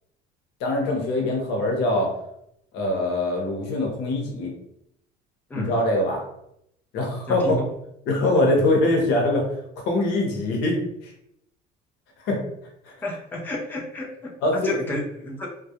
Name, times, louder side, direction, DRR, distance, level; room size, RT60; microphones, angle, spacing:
voice 1, 0.6-2.1 2.7-4.5 5.6-6.2 6.9-7.6 8.1-9.5 9.8-10.8 11.0-11.1 12.2-12.4 12.8-12.9 14.4-14.7, left 2 dB, 90° left, 1 dB, 0.8 m, -23 dB
voice 2, 7.3-7.7 8.3-8.4 13.0-14.1 14.5-15.5, left 1 dB, 10° left, -1 dB, 0.3 m, -30 dB
2.3 x 2.0 x 2.8 m, 0.76 s
cardioid pair, 175°, 18 cm